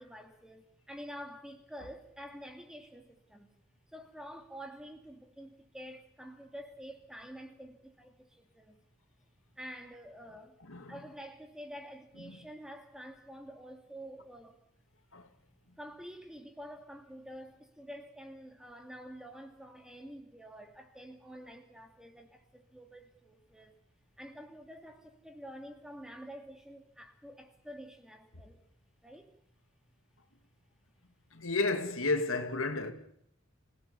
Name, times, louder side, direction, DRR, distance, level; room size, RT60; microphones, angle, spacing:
voice 1, 0.0-3.5 3.9-8.8 9.6-10.6 10.9-14.6 15.8-23.8 24.2-28.6 29.0-29.3, equal, 5° right, 2.5 m, -48 dB
voice 2, 31.3-32.9, left 3 dB, 80° left, 2.6 m, -32 dB
26.5 x 17.5 x 8.4 m
head